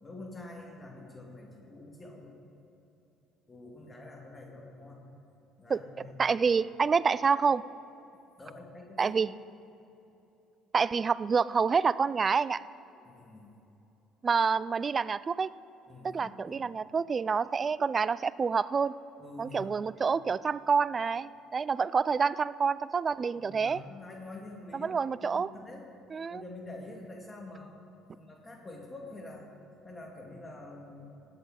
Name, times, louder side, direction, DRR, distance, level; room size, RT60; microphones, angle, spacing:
voice 1, 0.0-2.4 3.5-5.0 5.6-6.3 8.4-9.1 13.0-13.5 15.9-16.6 19.2-19.8 23.4-25.9 26.3-27.7 28.1-29.5 29.8-31.2, left 2 dB, 25° left, 0 dB, 2.3 m, -46 dB
voice 2, 6.2-7.6 9.0-9.3 10.7-12.6 14.2-15.5 16.0-18.9 19.4-23.8 24.7-25.5 26.1-26.4, right 5 dB, 35° right, 19 dB, 0.3 m, -27 dB
19.0 x 8.4 x 4.0 m, 2.9 s
hypercardioid pair, 60°, 0 cm